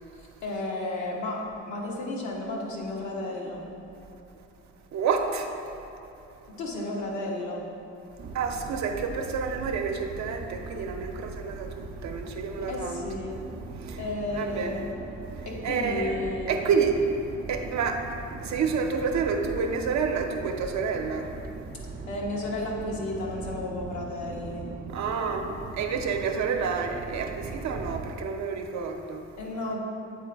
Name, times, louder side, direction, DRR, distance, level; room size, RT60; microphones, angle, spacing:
voice 1, 0.4-3.6 6.6-7.6 12.7-13.3 14.0-14.8 15.4-16.6 22.1-24.7 29.4-29.8, left 2 dB, 75° left, -3 dB, 1.3 m, -32 dB
voice 2, 4.9-5.5 8.3-13.0 13.8-14.0 14.3-14.8 15.6-17.0 17.5-18.1 18.4-21.3 24.9-29.2, right 5 dB, 65° right, 4 dB, 0.7 m, -29 dB
sound 1, 8.2-28.1, right 3 dB, 30° right, 0.4 m, -40 dB
8.4 x 3.9 x 3.4 m, 2.9 s
cardioid pair, 90°, 30 cm